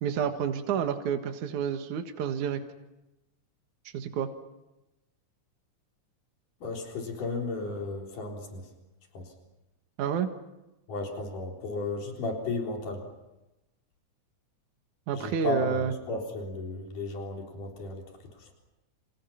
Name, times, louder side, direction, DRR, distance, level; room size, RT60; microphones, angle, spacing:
voice 1, 0.0-2.6 3.9-4.3 10.0-10.3 15.1-15.9, right 7 dB, 70° right, 6 dB, 3.0 m, -29 dB
voice 2, 6.6-8.7 9.1-9.3 10.9-13.1 15.1-18.0 18.4-18.5, left 3 dB, 85° left, 1 dB, 5.4 m, -34 dB
29.5 x 28.0 x 5.9 m, 0.97 s
omnidirectional pair, 3.6 m